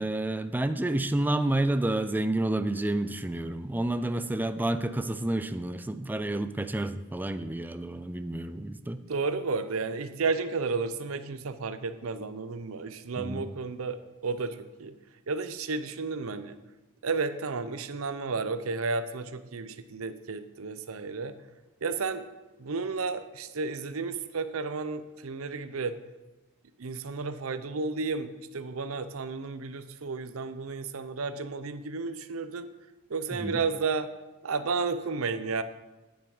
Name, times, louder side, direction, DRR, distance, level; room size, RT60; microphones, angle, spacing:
voice 1, 0.0-9.0 13.2-13.5 33.4-33.6, right 1 dB, 10° right, 10 dB, 0.4 m, -29 dB
voice 2, 9.1-14.9 15.3-16.5 17.0-21.3 21.8-22.3 22.6-26.0 26.8-32.7 33.1-34.1 34.4-35.6, right 4 dB, 80° right, 11 dB, 0.6 m, -32 dB
9.5 x 7.1 x 4.9 m, 1.1 s
head